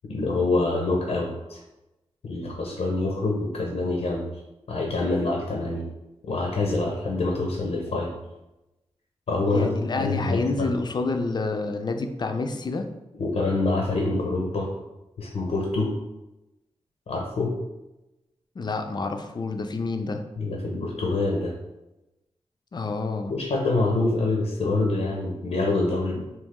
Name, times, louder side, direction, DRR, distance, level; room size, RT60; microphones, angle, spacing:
voice 1, 0.0-1.6 2.2-4.3 4.7-5.8 6.2-8.1 9.3-9.7 10.0-10.7 13.2-14.7 15.2-15.9 17.1-17.5 20.4-21.5 23.3-26.2, left 2 dB, 80° left, -1 dB, 0.6 m, -26 dB
voice 2, 9.5-12.9 18.6-20.2 22.7-23.3, left 3 dB, 40° left, 6 dB, 0.4 m, -28 dB
3.1 x 2.8 x 3.6 m, 0.99 s
wide cardioid pair, 95°, 11 cm